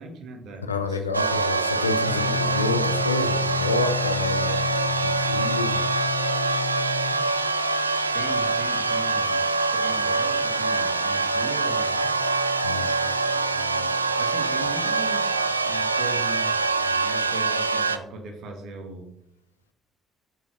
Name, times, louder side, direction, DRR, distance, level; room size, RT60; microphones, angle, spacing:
voice 1, 0.0-1.3 2.1-2.8 8.1-9.4 9.8-12.0 13.0-19.1, right 3 dB, 60° right, 4 dB, 1.4 m, -39 dB
voice 2, 0.6-4.7 5.0-5.8 12.6-12.9, left 3 dB, 85° left, 7 dB, 0.6 m, -29 dB
sound 1, 1.1-18.0, right 3 dB, 85° right, 0.3 m, -24 dB
sound 2, 2.1-15.7, left 8 dB, 45° left, 1.3 m, -35 dB
5.7 x 4.8 x 5.8 m, 0.76 s
figure-of-eight pair, 50°, 0 cm